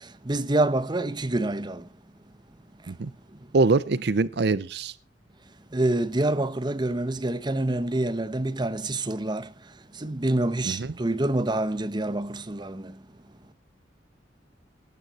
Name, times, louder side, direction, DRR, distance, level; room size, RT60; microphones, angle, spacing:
voice 1, 0.3-1.8 5.7-9.4 10.0-12.8, right 2 dB, 25° right, 0.9 m, -26 dB
voice 2, 3.5-4.9 10.6-10.9, right 3 dB, 60° right, 0.6 m, -24 dB
19.0 x 9.1 x 4.2 m
head